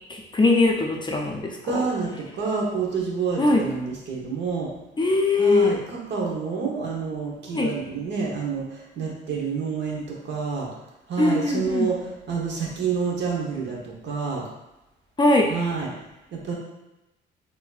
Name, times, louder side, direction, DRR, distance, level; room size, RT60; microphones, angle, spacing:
voice 1, 0.1-1.6 3.4-3.6 5.0-5.7 7.5-7.7 11.2-11.9 15.2-15.5, left 2 dB, 25° left, 1 dB, 0.5 m, -21 dB
voice 2, 1.6-4.7 5.4-10.7 11.1-14.4 15.5-15.9 16.3-16.5, right 5 dB, 65° right, -2 dB, 0.9 m, -28 dB
4.1 x 2.6 x 2.4 m, 0.98 s
cardioid pair, 90°, 20 cm